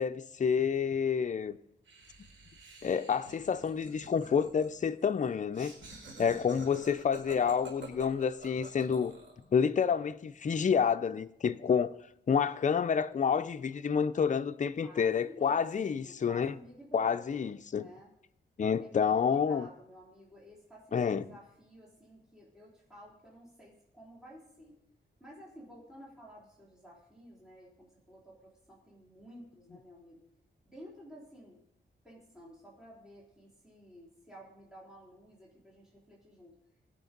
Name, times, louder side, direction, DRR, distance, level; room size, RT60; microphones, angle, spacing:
voice 1, 0.0-1.6 2.8-5.7 6.2-9.1 9.5-11.9 12.3-16.5 16.9-17.9 18.6-19.7 20.9-21.2, left 6 dB, 40° left, 0.5 m, -29 dB
Laughter, 1.9-9.4, right 3 dB, 75° right, 4.5 m, -49 dB
voice 2, 14.8-15.6 16.0-17.5 17.7-18.1 18.8-24.8 25.2-30.2 30.7-31.6 32.0-36.6, equal, 5° right, 3.8 m, -53 dB
19.5 x 6.5 x 5.3 m
wide cardioid pair, 90°, 19 cm